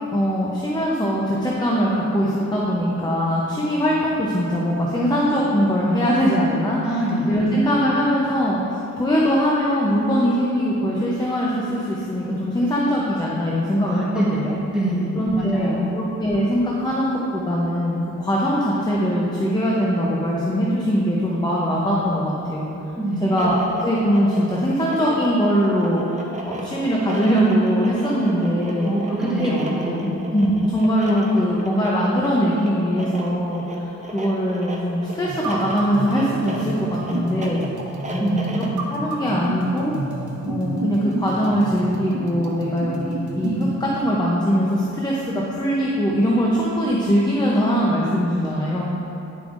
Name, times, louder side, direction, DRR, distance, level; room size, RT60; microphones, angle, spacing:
voice 1, 0.1-6.9 7.3-14.5 15.1-22.7 23.2-28.9 29.4-29.5 30.0-37.6 38.1-39.9 40.4-48.8, equal, 15° left, -5 dB, 0.6 m, -21 dB
voice 2, 6.8-7.5 13.8-15.9 23.0-23.3 28.8-30.1 38.2-38.6, right 1 dB, 5° right, -8 dB, 1.7 m, -25 dB
sound 1, 23.1-38.8, right 1 dB, 25° right, 0.6 m, -35 dB
sound 2, 35.3-43.8, right 2 dB, 80° right, 1.0 m, -30 dB
9.6 x 7.1 x 2.5 m, 2.9 s
wide cardioid pair, 155°, 29 cm